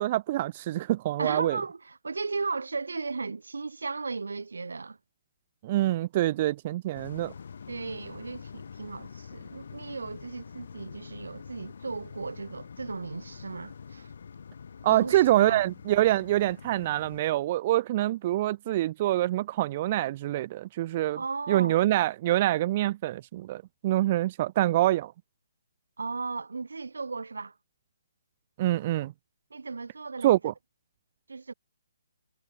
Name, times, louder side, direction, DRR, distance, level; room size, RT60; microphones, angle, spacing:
voice 1, 0.0-1.6 5.6-7.3 14.8-21.2 21.5-25.1 28.6-29.1 30.2-30.5, right 15 dB, 35° right, 1.4 m, -25 dB
voice 2, 1.2-5.0 7.7-14.1 14.9-15.6 21.1-21.8 26.0-27.5 29.5-30.4 31.3-31.5, right 4 dB, 75° right, 2.6 m, -36 dB
sound 1, 6.9-17.2, left 6 dB, 60° left, 4.6 m, -45 dB
figure-of-eight pair, 140°, 0 cm